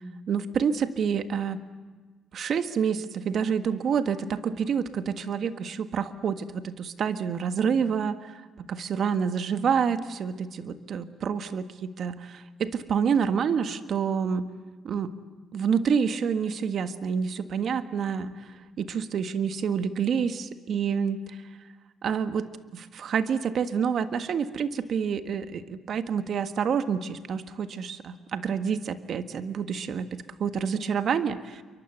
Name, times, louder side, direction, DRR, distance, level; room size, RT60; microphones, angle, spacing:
voice 1, 0.3-1.6 2.3-14.4 14.8-15.1 15.5-21.2 22.0-31.6, right 7 dB, 60° right, 9 dB, 1.6 m, -28 dB
28.0 x 24.0 x 8.2 m, 1.3 s
supercardioid pair, 60°, 0 cm